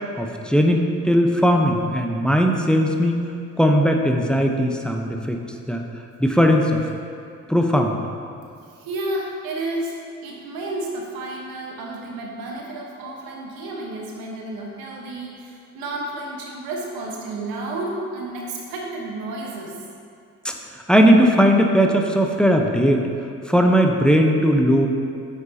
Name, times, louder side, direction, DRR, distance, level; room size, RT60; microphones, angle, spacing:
voice 1, 0.2-3.2 3.6-5.4 5.7-5.8 6.2-6.8 7.5-8.0 20.4-20.5 20.9-23.0 23.5-24.9, equal, ahead, 2 dB, 1.0 m, -18 dB
voice 2, 8.3-19.8, right 2 dB, 80° right, -2 dB, 1.4 m, -31 dB
9.5 x 7.9 x 2.9 m, 2.4 s
hypercardioid pair, 45°, 35 cm